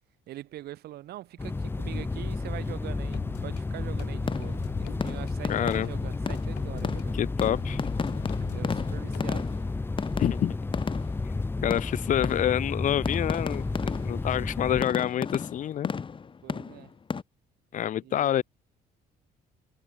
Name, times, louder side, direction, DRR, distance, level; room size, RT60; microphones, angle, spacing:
voice 1, 0.3-7.2 8.5-9.6 16.4-16.9 18.0-18.4, right 14 dB, 70° right, 1.7 m, -43 dB
sound 1, 1.4-14.9, left 3 dB, 15° left, 0.7 m, -32 dB
sound 2, 3.1-3.6 4.0-7.0 7.4-9.2, left 19 dB, 85° left, 1.6 m, -43 dB
sound 3, 4.3-4.7 5.0-11.3 11.7-12.8 13.1-14.4 14.8-17.2, left 5 dB, 30° left, 2.3 m, -34 dB
voice 2, 5.5-5.9 7.1-7.8 10.2-10.5 11.6-15.9 17.7-18.4, left 11 dB, 50° left, 0.9 m, -27 dB
cardioid pair, 110°, 17 cm